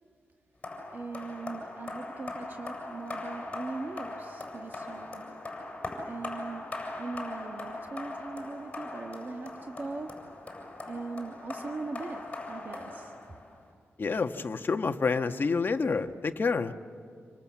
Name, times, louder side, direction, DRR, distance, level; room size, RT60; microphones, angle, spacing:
sound 1, 0.6-13.7, left 2 dB, 25° left, 7.3 m, -40 dB
voice 1, 0.9-5.2 6.1-6.7 7.0-10.1 10.8-12.2 12.5-13.1, right 3 dB, 45° right, 3 dB, 1.6 m, -40 dB
voice 2, 14.0-16.7, left 4 dB, 45° left, 6 dB, 1.3 m, -28 dB
28.0 x 26.0 x 7.5 m, 2.3 s
wide cardioid pair, 110°, 5 cm